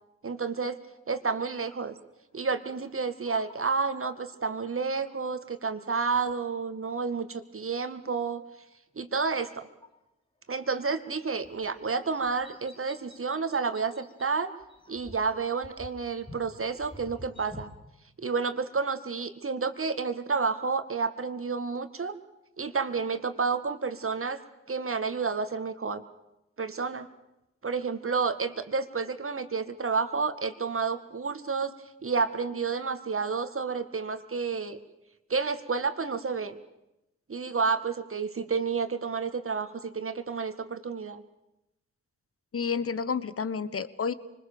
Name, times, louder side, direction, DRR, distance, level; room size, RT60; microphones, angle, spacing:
voice 1, 0.2-0.8 1.1-1.9 2.3-8.4 9.0-9.7 10.5-14.5 14.9-17.7 18.2-22.1 22.6-24.4 24.7-26.0 26.6-27.1 27.6-31.7 32.0-34.8 35.3-36.5 37.3-41.2, right 5 dB, 45° right, 9 dB, 2.1 m, -30 dB
sound 1, 1.6-2.0 2.6-4.4 4.7-5.6 5.8-6.8 7.7-7.8 9.1-10.0 11.0-11.1 11.4-14.3 14.6-17.8, left 1 dB, 15° left, 3.0 m, -51 dB
voice 2, 42.5-44.1, left 6 dB, 45° left, 16 dB, 1.3 m, -30 dB
25.0 x 20.5 x 7.0 m, 0.89 s
supercardioid pair, 40°, 31 cm